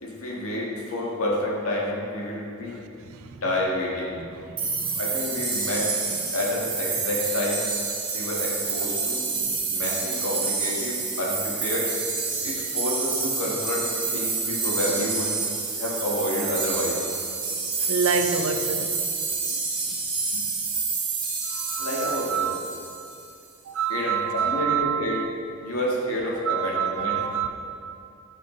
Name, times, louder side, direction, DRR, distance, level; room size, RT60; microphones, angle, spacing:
voice 1, 0.0-2.7 3.4-4.2 5.0-6.0 6.3-7.6 8.1-11.9 12.4-15.3 15.8-17.0 20.3-20.4 21.8-22.5 23.9-25.2 25.6-27.2, left 1 dB, 90° left, -4 dB, 1.7 m, -29 dB
voice 2, 2.7-3.4 4.2-5.2 12.3-12.4 17.8-19.0 19.5-19.6 19.9-20.0 21.5-22.9 23.7-25.3 26.4-27.5, right 7 dB, 75° right, 7 dB, 0.5 m, -28 dB
sound 1, 4.6-23.3, right 4 dB, 25° right, 1.2 m, -28 dB
9.5 x 5.8 x 3.2 m, 2.5 s
head